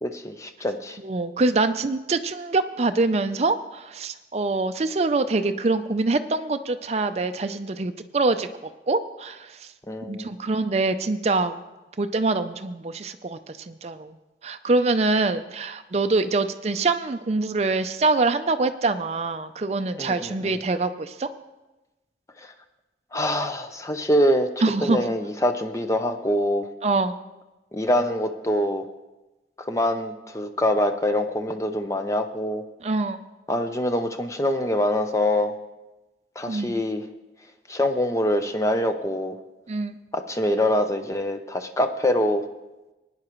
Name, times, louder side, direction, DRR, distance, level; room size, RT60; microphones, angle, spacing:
voice 1, 0.0-1.0 9.9-10.3 20.0-20.6 22.4-22.5 23.1-26.7 27.7-28.8 29.6-32.6 33.5-35.5 36.4-37.0 37.7-39.3 40.1-42.5, left 1 dB, 15° left, 7 dB, 0.6 m, -24 dB
voice 2, 1.0-8.5 8.9-9.7 10.1-11.6 12.0-13.4 13.7-14.2 14.4-21.3 24.6-25.0 26.8-27.2 32.8-33.2 36.5-36.8 39.7-40.0, right 3 dB, 35° right, 9 dB, 0.5 m, -24 dB
19.0 x 9.6 x 3.1 m, 1.1 s
head